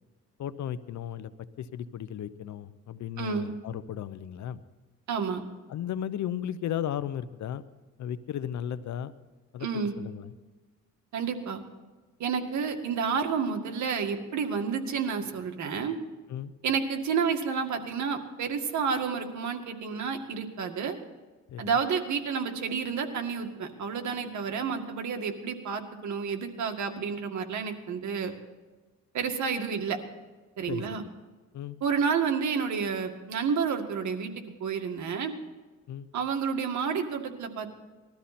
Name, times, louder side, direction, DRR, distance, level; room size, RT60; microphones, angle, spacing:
voice 1, 0.4-1.3 1.6-4.6 5.7-7.6 8.0-9.1 9.5-9.7 10.0-10.3 16.3-16.5 21.5-21.7 30.7-30.8 31.5-31.8 35.9-36.1, left 10 dB, 70° left, 14 dB, 0.9 m, -35 dB
voice 2, 3.2-3.5 5.1-5.4 9.6-9.9 11.1-11.6 12.2-16.0 16.6-20.9 21.6-28.3 29.1-30.0 30.6-31.0 31.8-35.3 36.1-37.7, right 6 dB, 70° right, 5 dB, 2.1 m, -30 dB
20.5 x 13.0 x 4.3 m, 1.3 s
cardioid pair, 90°, 30 cm